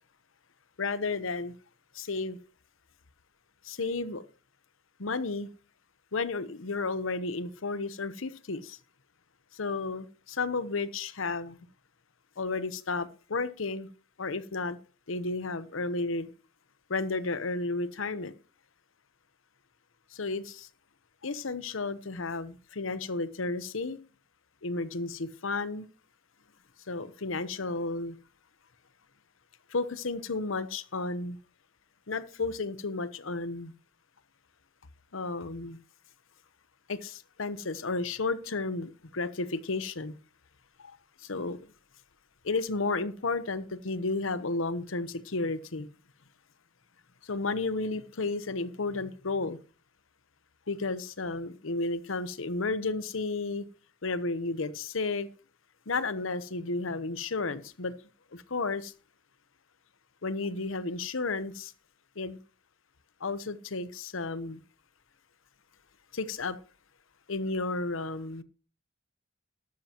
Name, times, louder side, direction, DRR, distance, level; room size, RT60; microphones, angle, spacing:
voice 1, 0.8-1.5 1.9-2.4 3.6-4.2 5.0-5.5 6.1-8.8 9.5-11.6 12.4-13.9 14.2-14.8 15.1-16.3 16.9-18.3 20.1-20.7 21.2-24.0 24.6-25.9 26.9-28.2 29.7-31.4 32.1-33.7 35.1-35.8 36.9-40.2 40.8-41.6 42.4-45.9 47.2-49.6 50.7-53.7 54.0-55.3 55.9-57.9 58.3-58.9 60.2-61.7 62.2-62.4 63.2-64.6 66.1-66.6 67.3-68.4, left 3 dB, 85° left, 15 dB, 0.9 m, -32 dB
13.0 x 12.5 x 3.0 m, 0.36 s
head